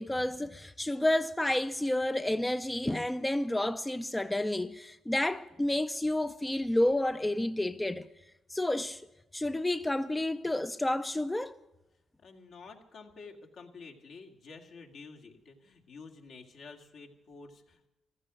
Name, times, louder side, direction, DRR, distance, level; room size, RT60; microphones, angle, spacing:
voice 1, 0.0-8.1 8.5-9.1 9.3-11.6, left 1 dB, 10° left, 0.5 m, -30 dB
voice 2, 12.2-17.9, left 4 dB, 65° left, 2.2 m, -50 dB
15.0 x 13.0 x 6.3 m
cardioid pair, 90°, 0 cm